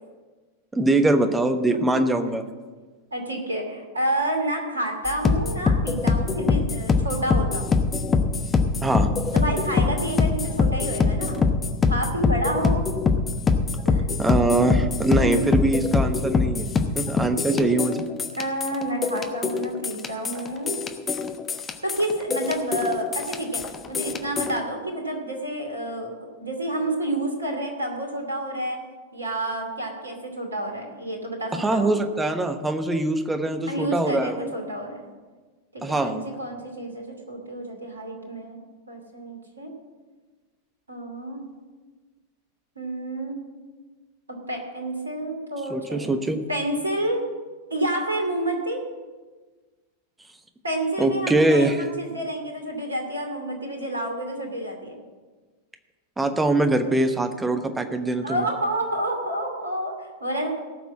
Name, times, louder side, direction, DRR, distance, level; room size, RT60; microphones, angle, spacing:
voice 1, 0.7-2.4 8.8-9.1 14.2-16.7 16.9-18.0 31.5-34.5 35.8-36.2 45.7-46.4 51.0-51.8 56.2-58.5, right 2 dB, 10° right, 8 dB, 1.1 m, -23 dB
voice 2, 1.7-2.0 3.1-7.8 9.3-11.4 11.9-12.8 13.9-14.1 14.6-15.4 17.5-18.1 18.4-20.8 21.8-23.6 23.9-26.1 26.4-28.8 29.1-31.9 33.7-35.1 35.7-38.6 38.9-39.7 40.9-41.4 42.8-43.4 44.3-46.2 46.5-47.3 47.7-48.8 50.6-55.0 58.2-60.5, right 1 dB, 75° right, 3 dB, 2.5 m, -29 dB
sound 1, 5.1-24.6, left 4 dB, 20° left, 1.0 m, -24 dB
17.5 x 6.0 x 7.5 m, 1.3 s
figure-of-eight pair, 90°, 0 cm